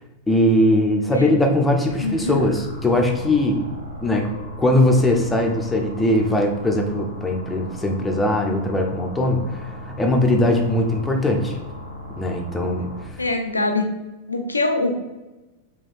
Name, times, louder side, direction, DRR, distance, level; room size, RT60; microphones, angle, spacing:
voice 1, 0.3-3.6 4.0-4.3 4.6-11.6 12.2-13.2, left 1 dB, 10° left, 2 dB, 0.6 m, -20 dB
sound 1, 1.9-13.0, equal, 80° right, 1.0 m, -36 dB
voice 2, 2.0-2.4 13.2-13.9 14.3-14.9, left 2 dB, 80° left, 5 dB, 0.5 m, -23 dB
3.3 x 3.1 x 4.2 m, 1.1 s
figure-of-eight pair, 90°, 0 cm